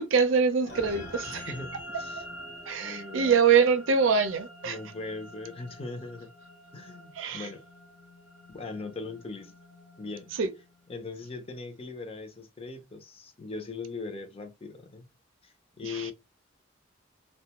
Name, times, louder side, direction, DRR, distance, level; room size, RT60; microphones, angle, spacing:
voice 1, 0.0-1.4 2.7-4.8 7.2-7.5 10.3-10.5 15.8-16.1, right 5 dB, 80° right, 0.5 m, -24 dB
sound 1, 0.6-11.3, equal, 60° left, 0.9 m, -45 dB
voice 2, 1.3-2.2 2.8-3.4 4.6-6.3 6.7-7.6 8.5-9.6 10.0-10.3 10.9-15.1 15.4-16.1, left 3 dB, 30° left, 0.5 m, -40 dB
2.5 x 2.2 x 2.9 m
head